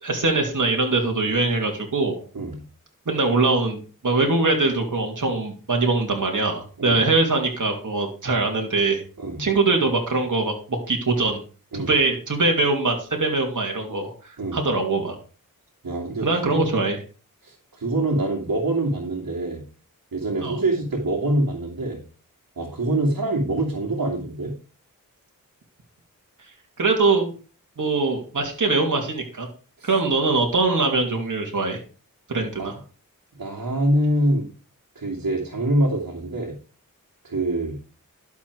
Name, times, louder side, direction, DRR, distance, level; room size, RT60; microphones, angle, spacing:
voice 1, 0.0-2.2 3.1-9.0 9.4-11.4 11.8-14.1 14.5-15.2 16.2-17.0 20.4-20.6 26.8-27.3 27.8-29.5 29.8-31.8 32.3-32.7, right 3 dB, 65° right, 1 dB, 2.7 m, -22 dB
voice 2, 15.8-16.7 17.4-19.6 20.1-22.0 22.6-24.5 29.8-29.9 32.6-32.7 33.4-34.5 35.0-36.5 37.2-37.7, right 1 dB, 80° right, -2 dB, 2.7 m, -25 dB
11.5 x 7.2 x 4.8 m, 0.37 s
cardioid pair, 45°, 34 cm